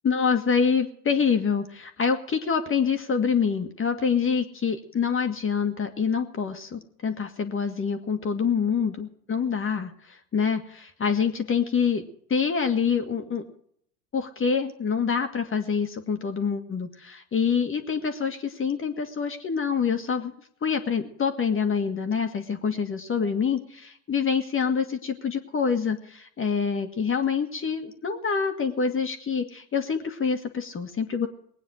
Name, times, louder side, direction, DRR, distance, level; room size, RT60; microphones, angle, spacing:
voice 1, 0.0-13.4 14.1-20.3 20.6-31.3, left 6 dB, 25° left, 6 dB, 1.8 m, -26 dB
20.0 x 9.2 x 6.3 m, 0.66 s
hypercardioid pair, 85°, 47 cm